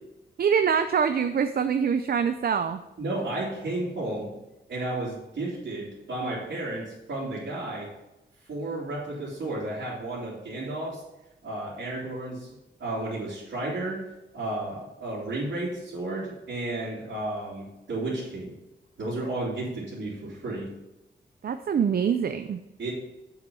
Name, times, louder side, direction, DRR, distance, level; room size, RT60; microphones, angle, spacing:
voice 1, 0.4-2.8 21.4-22.6, right 7 dB, 55° right, 9 dB, 0.5 m, -24 dB
voice 2, 3.0-4.3 4.7-7.9 8.5-11.0 11.4-12.5 12.8-14.0 14.3-18.5 19.0-20.7 22.8-22.9, right 2 dB, 75° right, -11 dB, 3.0 m, -32 dB
7.8 x 6.0 x 5.6 m, 0.97 s
wide cardioid pair, 125°, 19 cm